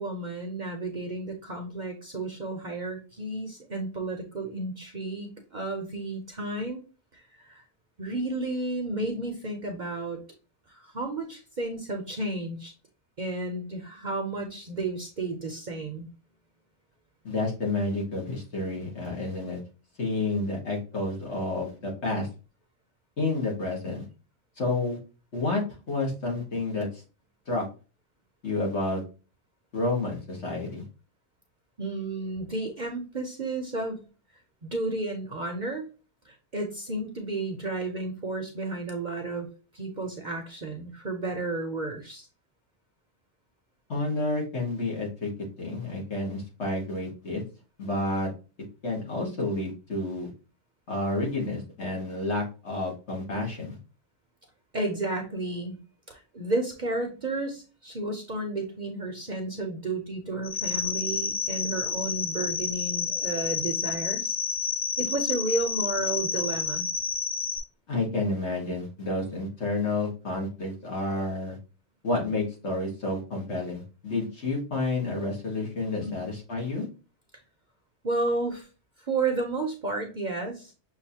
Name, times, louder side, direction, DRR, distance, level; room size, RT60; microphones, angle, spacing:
voice 1, 0.0-6.8 7.1-7.6 8.0-10.2 10.7-12.7 13.2-16.1 31.8-34.0 34.6-35.9 36.2-39.5 39.7-42.3 54.7-55.8 56.1-64.3 65.0-66.9 76.0-76.2 78.0-78.7 79.0-80.7, right 2 dB, 45° right, 3 dB, 0.8 m, -32 dB
voice 2, 17.2-19.6 20.0-22.3 23.2-24.1 24.6-25.0 25.3-25.6 25.9-26.9 27.5-27.6 28.4-29.0 29.7-30.8 43.9-45.3 45.6-47.4 47.8-48.3 48.8-50.3 50.9-53.8 67.9-71.6 72.0-76.9, left 2 dB, 65° left, -2 dB, 1.9 m, -30 dB
sound 1, 60.4-67.6, left 6 dB, 35° left, 0.8 m, -30 dB
6.5 x 2.6 x 2.8 m, 0.33 s
omnidirectional pair, 1.2 m